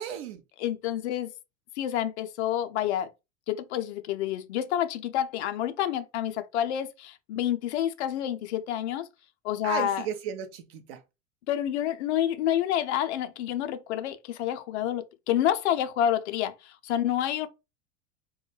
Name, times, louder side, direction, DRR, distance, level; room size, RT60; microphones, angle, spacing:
voice 1, 0.0-0.4 9.6-11.0, right 8 dB, 55° right, 0.5 m, -34 dB
voice 2, 0.6-1.3 1.8-3.1 3.5-9.1 9.4-10.1 11.5-17.5, left 11 dB, 60° left, 0.5 m, -28 dB
2.2 x 2.1 x 3.1 m
figure-of-eight pair, 85°, 38 cm